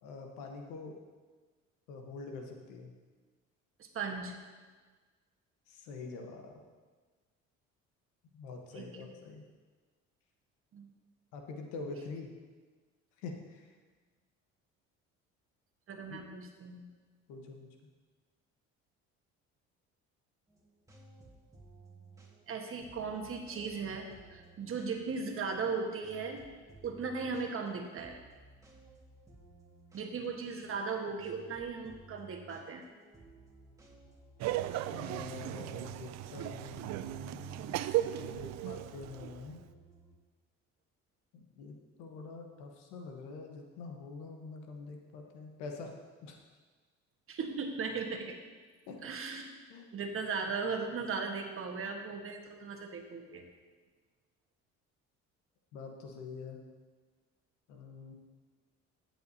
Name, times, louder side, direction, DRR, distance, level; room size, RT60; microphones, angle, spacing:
voice 1, 0.0-1.0 1.9-2.9 5.7-6.6 8.3-9.4 11.3-12.3 13.2-13.7 16.1-16.2 17.3-17.7 34.9-37.8 38.2-39.6 41.3-45.9 46.2-46.4 48.9-49.0 49.7-49.9 55.7-56.6 57.7-58.1, left 4 dB, 90° left, 3 dB, 1.2 m, -45 dB
voice 2, 3.8-4.3 8.7-9.1 10.7-10.9 15.9-16.8 22.5-26.4 26.8-28.2 29.9-32.8 47.3-48.3 49.0-49.5 49.9-53.4, right 5 dB, 50° right, 3 dB, 1.4 m, -37 dB
sound 1, 20.5-40.1, right 2 dB, 10° right, 1.7 m, -58 dB
Laughter, 34.4-39.5, right 14 dB, 65° right, 0.4 m, -36 dB
13.5 x 7.7 x 2.8 m, 1.4 s
supercardioid pair, 85°, 29 cm